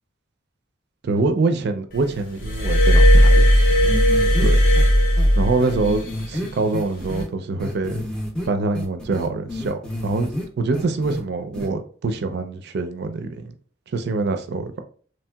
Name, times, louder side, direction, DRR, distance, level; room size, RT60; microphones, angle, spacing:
voice 1, 1.0-3.5 4.4-4.6 5.3-8.1 8.5-13.5 13.9-14.8, right 3 dB, 55° right, 0.4 m, -25 dB
Glass, 2.4-6.0 7.0-7.2, equal, 45° left, 0.6 m, -15 dB
sound 1, 3.8-4.4 4.8-4.9 5.2-5.3 5.6-7.3 7.6-8.5 8.7-10.4 10.7-11.2 11.5-11.7, left 1 dB, 5° left, 0.5 m, -29 dB
3.0 x 2.7 x 2.2 m
head